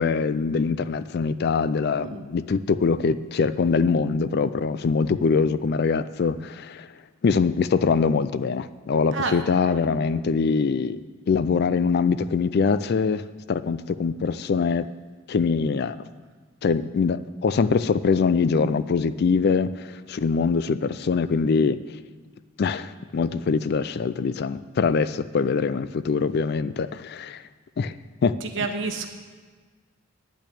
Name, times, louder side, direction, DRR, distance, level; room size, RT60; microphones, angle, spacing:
voice 1, 0.0-6.9 7.2-11.0 11.3-14.9 15.3-16.0 16.6-21.8 22.6-27.4 27.8-27.9 28.2-28.7, left 5 dB, 50° left, 14 dB, 0.4 m, -23 dB
voice 2, 1.9-2.3 9.1-9.4 28.4-29.1, right 4 dB, 65° right, 5 dB, 1.1 m, -29 dB
10.5 x 6.1 x 8.4 m, 1.4 s
head